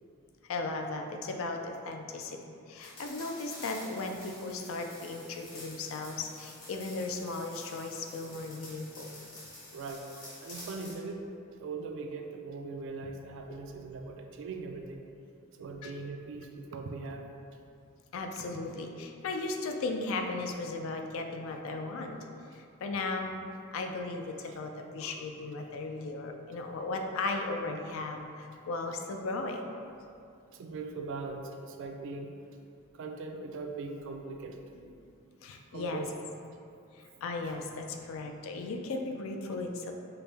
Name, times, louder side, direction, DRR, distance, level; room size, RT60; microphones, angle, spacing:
voice 1, 0.5-9.1 15.8-15.9 18.1-22.2 22.5-29.7 35.4-36.1 36.9-39.9, left 3 dB, 65° left, 4 dB, 0.3 m, -36 dB
sound 1, 2.8-11.0, left 1 dB, 85° left, 1.3 m, -49 dB
voice 2, 9.7-10.1 10.4-11.3 11.6-15.0 15.6-17.3 18.4-18.5 24.4-24.6 25.0-25.2 25.6-25.7 30.5-32.3 32.9-34.6 35.5-36.1, right 3 dB, 60° right, 3 dB, 0.3 m, -40 dB
4.7 x 2.1 x 3.2 m, 2.5 s
head